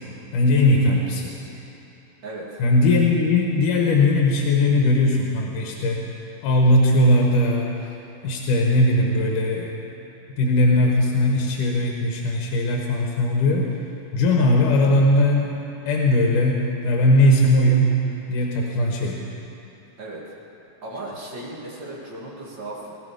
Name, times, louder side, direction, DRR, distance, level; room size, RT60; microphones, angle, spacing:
voice 1, 0.3-1.3 2.6-6.0 6.4-7.7 8.2-9.7 10.4-13.7 14.1-15.5 15.9-17.9 18.3-19.2, left 1 dB, 90° left, -1 dB, 2.8 m, -19 dB
voice 2, 2.2-2.6 2.9-3.0 20.0-20.3 20.8-22.9, right 2 dB, 40° right, -5 dB, 3.1 m, -36 dB
18.5 x 15.0 x 5.2 m, 2.9 s
omnidirectional pair, 3.6 m